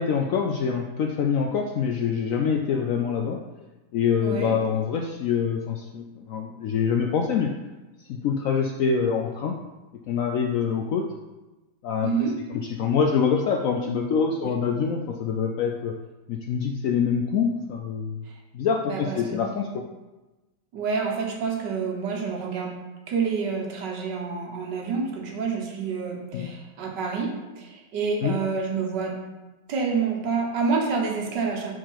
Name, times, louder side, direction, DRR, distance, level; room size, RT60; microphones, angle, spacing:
voice 1, 0.0-3.4 3.9-7.5 8.1-9.5 10.1-11.0 11.8-12.1 12.8-16.0 16.3-18.2 18.5-19.8 26.3-26.5 28.2-28.3, left 6 dB, 75° left, 2 dB, 0.7 m, -25 dB
voice 2, 4.2-4.5 12.0-12.3 14.4-14.5 18.8-19.4 20.7-22.7 23.1-29.1 29.7-31.7, right 5 dB, 80° right, 0 dB, 1.7 m, -28 dB
4.6 x 4.6 x 5.7 m, 1.1 s
omnidirectional pair, 1.9 m